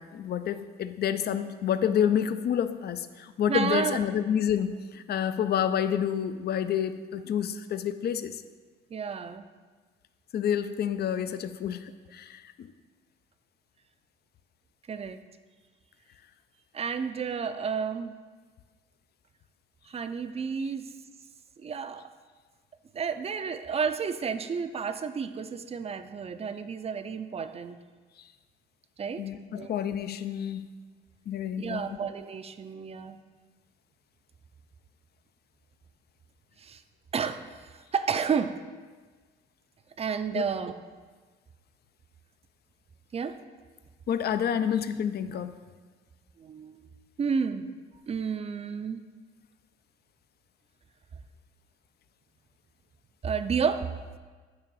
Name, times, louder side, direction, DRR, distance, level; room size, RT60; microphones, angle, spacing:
voice 1, 0.0-8.4 10.3-12.7 29.2-30.7 31.3-32.0 40.3-40.4 44.1-45.6, left 9 dB, 55° left, 11 dB, 0.4 m, -29 dB
voice 2, 3.5-4.0 8.9-9.5 14.9-15.2 16.7-18.1 19.9-20.9 21.6-22.1 22.9-27.8 29.0-29.2 29.6-29.7 31.6-33.2 36.6-36.8 37.1-38.6 40.0-40.7 43.1-43.4 46.4-46.8 47.2-47.7 48.1-49.0 53.2-53.9, right 6 dB, 30° right, 10 dB, 0.4 m, -31 dB
9.0 x 3.1 x 5.4 m, 1.4 s
cardioid pair, 90°, 20 cm